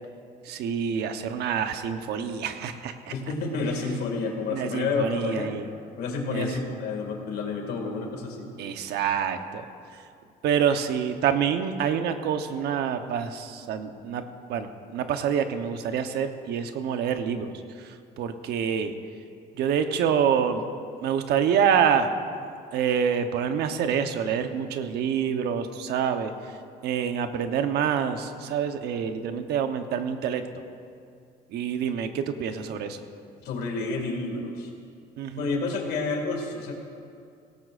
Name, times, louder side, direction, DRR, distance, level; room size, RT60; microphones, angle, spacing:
voice 1, 0.5-2.9 4.5-5.7 6.3-6.5 8.6-9.6 10.4-14.2 14.5-17.5 18.2-18.9 19.6-20.6 21.0-22.1 22.7-26.3 26.8-30.4 31.5-33.0 35.2-35.5, right 8 dB, 75° right, 7 dB, 0.9 m, -26 dB
voice 2, 3.1-5.5 6.0-8.5 33.4-34.7 35.4-36.7, left 3 dB, 70° left, 2 dB, 2.2 m, -29 dB
17.5 x 17.5 x 2.5 m, 2.4 s
cardioid pair, 110°, 17 cm